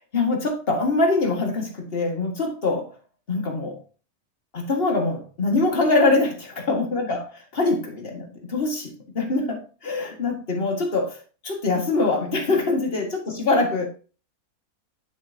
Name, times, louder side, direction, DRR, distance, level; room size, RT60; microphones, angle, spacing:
voice 1, 0.1-2.9 3.3-3.8 4.5-7.2 7.5-11.2 11.4-13.9, left 3 dB, 40° left, 2.1 m, -23 dB
9.6 x 7.9 x 2.8 m
omnidirectional pair, 1.6 m